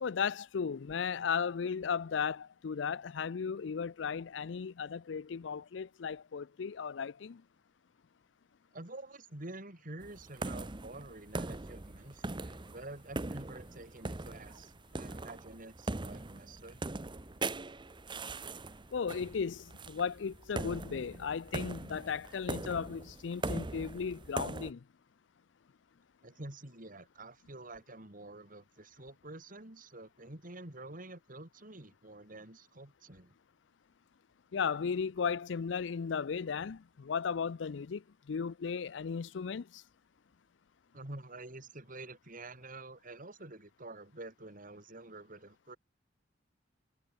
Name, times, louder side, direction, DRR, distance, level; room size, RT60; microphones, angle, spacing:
voice 1, 0.0-7.4 18.9-24.8 34.5-38.0 38.3-39.8, left 6 dB, 75° left, 0.5 m, -35 dB
voice 2, 8.7-16.8 26.2-33.3 40.9-45.8, right 2 dB, 45° right, 3.2 m, -48 dB
sound 1, 10.0-24.7, right 2 dB, 25° right, 0.9 m, -41 dB
head